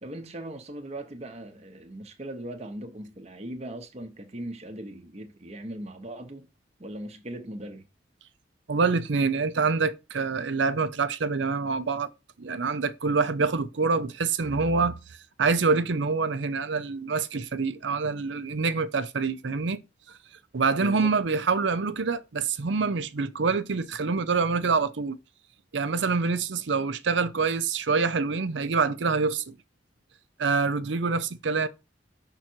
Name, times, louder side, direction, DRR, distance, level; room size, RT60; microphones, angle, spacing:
voice 1, 0.0-6.5 6.8-7.8 20.8-21.2, right 1 dB, 35° right, 0.9 m, -39 dB
voice 2, 8.7-12.1 12.4-15.0 15.4-19.8 20.5-25.2 25.7-29.6 30.4-31.7, right 4 dB, 70° right, 0.6 m, -26 dB
5.9 x 3.8 x 4.5 m
head